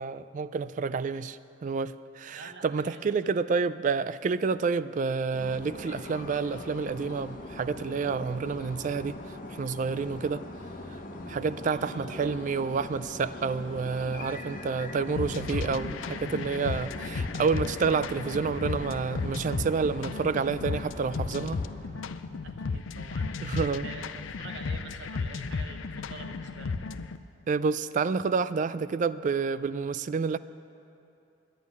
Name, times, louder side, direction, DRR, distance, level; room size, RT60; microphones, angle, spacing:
voice 1, 0.0-9.2 9.5-10.4 11.3-21.6 23.4-23.8 27.5-30.4, right 5 dB, 40° right, 16 dB, 0.3 m, -29 dB
voice 2, 2.3-3.3 11.7-12.3 22.4-26.8, right 3 dB, 65° right, 5 dB, 0.8 m, -47 dB
sound 1, 5.3-21.7, left 1 dB, 45° left, 1.1 m, -41 dB
Motor vehicle (road), 12.3-26.1 26.5-26.9, equal, 10° right, 2.4 m, -54 dB
sound 2, 15.2-27.2, left 4 dB, 85° left, 0.5 m, -34 dB
11.5 x 9.3 x 9.5 m, 2.7 s
head